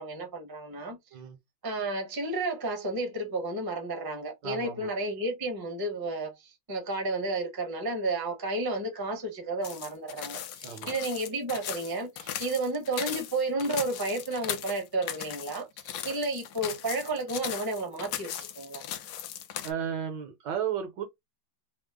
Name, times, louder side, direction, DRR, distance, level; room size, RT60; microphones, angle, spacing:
voice 1, 0.0-1.0 1.6-18.8, right 2 dB, 20° right, 0.5 m, -32 dB
voice 2, 4.4-4.9 10.6-10.9 19.6-21.0, right 8 dB, 70° right, 1.3 m, -34 dB
sound 1, 9.6-19.7, left 10 dB, 70° left, 0.9 m, -38 dB
3.4 x 2.0 x 3.4 m
omnidirectional pair, 2.2 m